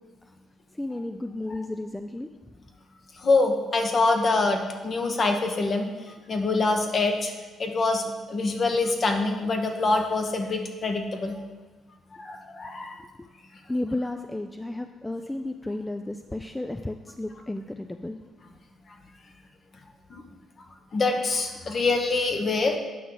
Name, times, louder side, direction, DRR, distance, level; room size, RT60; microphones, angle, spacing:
voice 1, 0.7-2.3 13.0-13.3 13.7-18.2, left 2 dB, 10° left, 6 dB, 0.4 m, -33 dB
voice 2, 3.2-5.9 6.3-7.3 7.6-11.4 12.2-13.0 20.1-20.2 20.9-22.8, left 3 dB, 45° left, 4 dB, 1.1 m, -25 dB
9.2 x 6.0 x 3.9 m, 1.3 s
cardioid pair, 90°, 0 cm